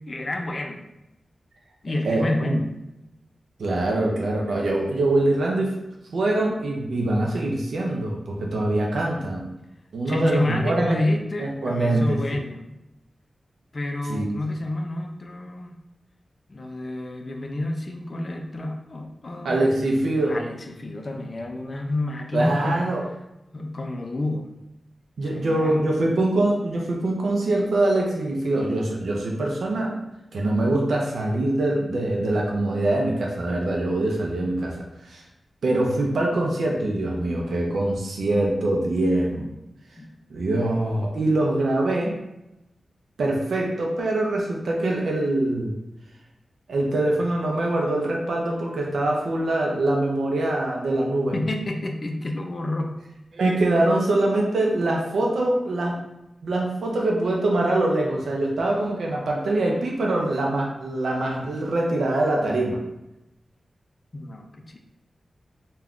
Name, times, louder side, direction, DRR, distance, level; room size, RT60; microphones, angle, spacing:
voice 1, 0.1-0.8 1.8-2.7 10.1-12.7 13.7-15.8 16.5-19.6 20.3-22.8 23.5-24.5 25.2-25.9 40.0-40.1 51.3-52.9 64.1-64.8, left 1 dB, 35° left, 3 dB, 0.3 m, -29 dB
voice 2, 2.0-2.6 3.6-5.7 6.1-9.4 9.9-11.0 11.4-12.4 14.1-14.4 19.4-20.4 22.3-23.0 25.2-30.0 30.3-35.2 35.6-39.5 40.3-42.1 43.2-45.8 46.7-51.4 53.3-56.0 56.4-62.8, right 2 dB, 90° right, -1 dB, 0.4 m, -23 dB
2.4 x 2.1 x 3.5 m, 0.91 s
wide cardioid pair, 155°, 0 cm